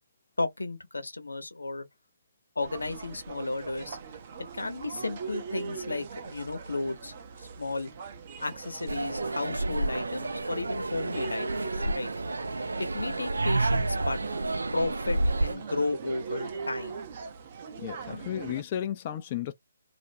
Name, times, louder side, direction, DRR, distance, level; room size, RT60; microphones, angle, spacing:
voice 1, 0.4-1.8 2.6-4.0 4.5-7.1 7.4-7.9 8.4-12.1 12.8-14.2 14.7-16.9 18.1-18.3, left 2 dB, 80° left, 0.9 m, -33 dB
sound 1, 2.6-18.6, right 5 dB, 40° right, 0.6 m, -41 dB
sound 2, 8.9-15.5, right 2 dB, 80° right, 0.4 m, -30 dB
voice 2, 17.8-19.5, left 10 dB, 35° left, 0.4 m, -33 dB
2.4 x 2.2 x 2.6 m
figure-of-eight pair, 145°, 0 cm